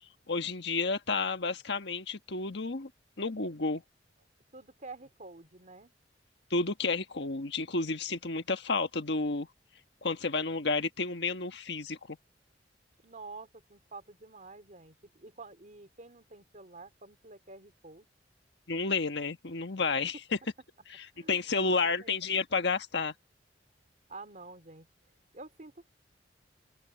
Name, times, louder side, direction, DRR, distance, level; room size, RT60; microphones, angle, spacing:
voice 1, 0.3-2.9 3.2-3.8 6.5-9.5 10.0-12.2 18.7-20.2 20.9-23.1, left 4 dB, 65° left, 1.5 m, -31 dB
voice 2, 4.5-5.9 13.0-18.1 19.8-20.0 21.1-22.2 24.1-25.9, right 3 dB, 45° right, 3.2 m, -49 dB
open air
head